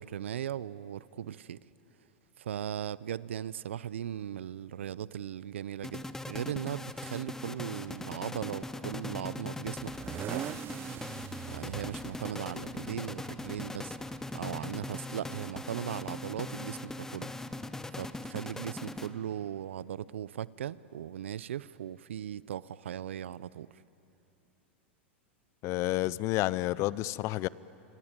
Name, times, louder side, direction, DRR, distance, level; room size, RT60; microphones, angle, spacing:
voice 1, 0.0-1.6 2.4-10.6 11.5-14.0 14.3-17.3 17.9-23.7, right 10 dB, 80° right, 20 dB, 0.6 m, -38 dB
sound 1, 5.8-19.5, left 2 dB, 5° left, 1.0 m, -40 dB
sound 2, 9.8-14.8, right 12 dB, 35° right, 0.6 m, -43 dB
voice 2, 25.6-27.5, left 17 dB, 45° left, 21 dB, 0.6 m, -30 dB
27.0 x 24.5 x 9.0 m, 2.8 s
hypercardioid pair, 105°, 6 cm